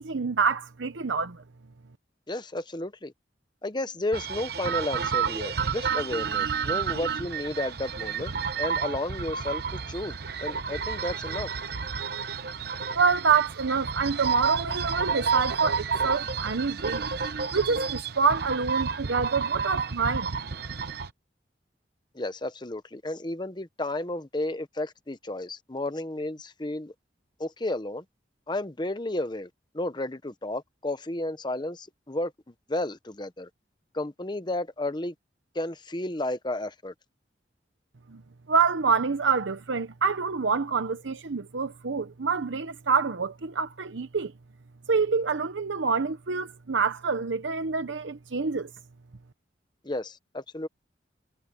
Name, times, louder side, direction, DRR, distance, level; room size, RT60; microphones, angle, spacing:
voice 1, 0.0-1.4 12.9-17.0 17.5-20.3 38.1-38.2 38.5-44.3 44.9-48.7, right 5 dB, 85° right, 0.9 m, -26 dB
voice 2, 2.3-3.1 3.6-10.1 10.4-11.5 22.1-26.9 27.4-28.0 28.5-32.3 32.7-33.5 33.9-35.1 35.5-36.9 49.8-50.7, left 1 dB, 25° left, 0.9 m, -32 dB
sound 1, 4.1-21.1, right 6 dB, 55° right, 0.9 m, -30 dB
head